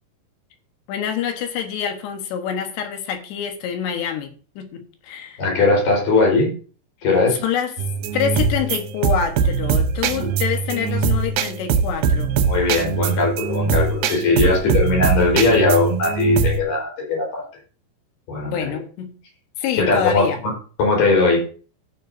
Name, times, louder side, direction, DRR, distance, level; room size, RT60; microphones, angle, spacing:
voice 1, 0.9-5.4 7.4-7.8 8.1-12.4 14.4-14.7 18.4-19.1 19.6-20.4, left 8 dB, 80° left, 3.4 m, -26 dB
voice 2, 5.4-6.5 7.0-7.4 10.2-10.3 12.5-17.5 18.3-18.7 19.8-20.3 20.8-21.4, left 3 dB, 55° left, 5.7 m, -19 dB
sound 1, 7.8-16.6, right 5 dB, 75° right, 2.3 m, -22 dB
17.0 x 7.1 x 2.6 m
omnidirectional pair, 4.9 m